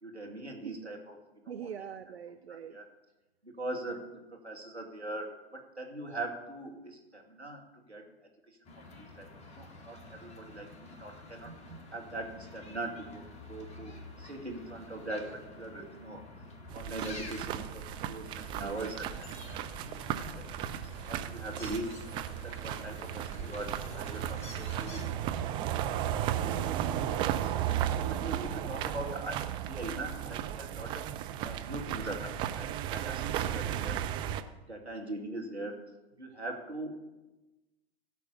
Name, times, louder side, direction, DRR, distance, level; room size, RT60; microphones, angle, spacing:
voice 1, 0.0-1.2 2.7-2.8 3.4-8.0 9.0-9.3 9.6-11.5 11.9-16.2 16.7-19.6 19.9-20.0 20.4-25.2 26.4-27.6 28.1-31.0 31.4-34.0 34.7-35.8 36.2-36.9, right 2 dB, 90° right, 0 dB, 2.5 m, -41 dB
voice 2, 1.5-2.8 11.5-11.8 18.4-18.9 26.8-27.1, right 8 dB, 70° right, 10 dB, 0.6 m, -44 dB
sound 1, 8.6-25.1, left 2 dB, 20° left, 2.0 m, -48 dB
sound 2, 16.7-34.4, right 11 dB, 15° right, 0.4 m, -35 dB
15.0 x 6.0 x 7.2 m, 1.1 s
figure-of-eight pair, 105°, 33 cm